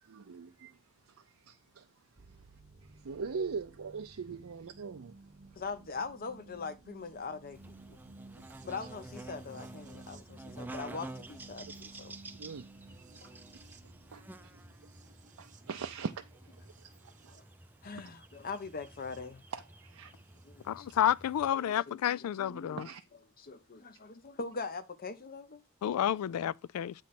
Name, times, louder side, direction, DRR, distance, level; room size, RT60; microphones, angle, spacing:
voice 1, 0.0-0.8 1.1-1.9 3.0-5.1 12.4-12.7 14.1-14.6 15.4-16.2 16.5-16.9 17.2-17.4 19.5-20.1 22.8-23.0, right 5 dB, 70° right, 0.5 m, -41 dB
sound 1, 2.2-19.2 20.4-20.5, right 3 dB, 35° right, 0.8 m, -56 dB
voice 2, 5.6-8.0 8.6-12.2 13.2-13.3 17.3-17.4 17.8-19.4 20.4-20.9 21.5-22.8 23.4-25.6 26.1-26.2, left 4 dB, 45° left, 0.7 m, -42 dB
Buzz, 7.5-21.5, right 2 dB, 10° right, 0.4 m, -50 dB
voice 3, 20.7-22.8 25.8-26.9, left 10 dB, 85° left, 0.3 m, -30 dB
8.3 x 3.2 x 5.8 m
head